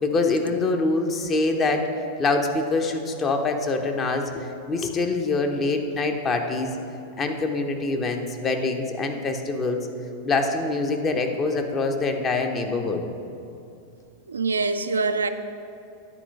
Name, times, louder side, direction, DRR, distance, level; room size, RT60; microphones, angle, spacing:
voice 1, 0.0-1.9 2.2-6.7 7.2-9.8 10.2-13.0, left 3 dB, 25° left, 4 dB, 0.8 m, -25 dB
voice 2, 14.3-15.3, right 4 dB, 75° right, 9 dB, 0.3 m, -24 dB
10.0 x 4.4 x 5.3 m, 2.6 s
figure-of-eight pair, 90°, 0 cm